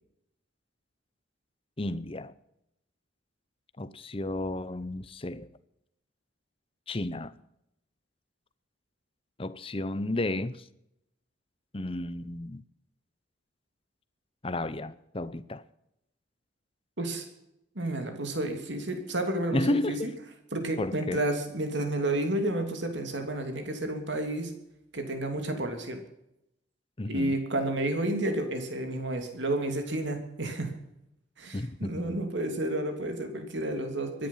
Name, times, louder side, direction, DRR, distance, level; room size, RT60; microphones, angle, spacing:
voice 1, 1.8-2.3 3.8-5.5 6.9-7.3 9.4-10.7 11.7-12.6 14.4-15.6 19.5-20.1 20.8-21.2 27.0-27.3 31.5-32.2, left 1 dB, 30° left, 0.7 m, -32 dB
voice 2, 17.7-20.1 20.5-24.5 24.9-26.0 27.1-30.7 31.4-34.3, right 1 dB, 65° right, 3.0 m, -31 dB
23.0 x 10.5 x 5.7 m
head